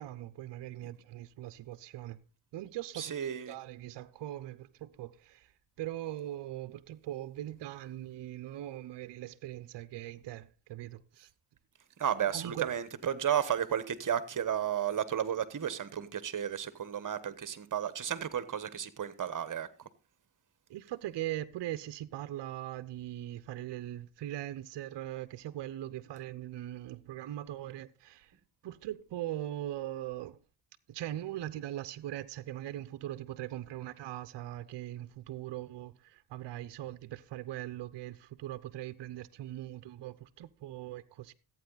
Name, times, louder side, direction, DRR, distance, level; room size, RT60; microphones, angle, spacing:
voice 1, 0.0-2.2 2.5-3.1 3.5-11.3 12.3-12.8 20.7-28.4 28.6-30.4 30.9-41.3, right 13 dB, 55° right, 0.8 m, -40 dB
voice 2, 2.9-3.6 12.0-19.9, right 9 dB, 40° right, 1.2 m, -33 dB
14.0 x 9.0 x 4.0 m
cardioid pair, 95°, 49 cm